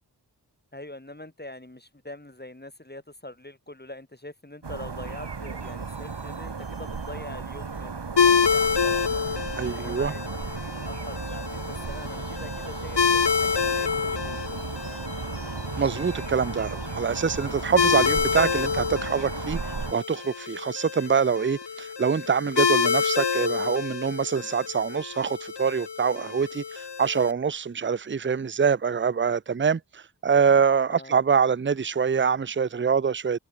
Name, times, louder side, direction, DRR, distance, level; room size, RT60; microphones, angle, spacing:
voice 1, 0.7-10.4 10.9-14.6 30.9-31.2, left 1 dB, 25° left, 5.5 m, -43 dB
sound 1, 4.6-19.9, right 5 dB, 80° right, 3.2 m, -35 dB
sound 2, 5.5-7.1 7.6-7.8 8.4-10.0 10.3-10.7 11.2-12.8 13.2-13.5 14.0-15.6 16.0-16.3 16.8-18.4 18.9-19.1 19.7-21.3 21.6-22.0 22.5-24.1 24.5-24.8, left 3 dB, 55° left, 7.1 m, -57 dB
sound 3, 8.2-27.3, left 6 dB, 80° left, 1.5 m, -28 dB
voice 2, 9.6-10.1 15.8-19.6 19.9-33.4, right 6 dB, 30° right, 0.6 m, -25 dB
wide cardioid pair, 45°, 41 cm